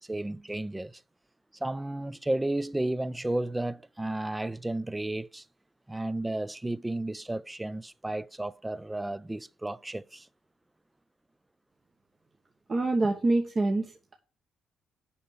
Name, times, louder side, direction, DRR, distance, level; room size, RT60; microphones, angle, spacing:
voice 1, 0.1-0.9 1.6-5.4 5.9-10.3, right 1 dB, 10° right, 0.5 m, -33 dB
voice 2, 12.7-14.2, right 2 dB, 35° right, 1.1 m, -26 dB
7.1 x 5.6 x 7.2 m
cardioid pair, 90°, 0 cm